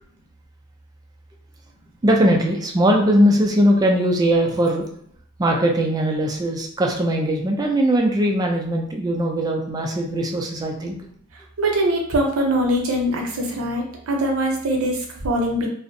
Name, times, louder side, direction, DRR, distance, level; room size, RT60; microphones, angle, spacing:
voice 1, 2.0-4.9 5.4-11.0, equal, 20° right, 1 dB, 0.3 m, -20 dB
voice 2, 11.6-15.7, right 1 dB, 90° right, 1 dB, 0.6 m, -22 dB
2.5 x 2.0 x 2.6 m, 0.66 s
head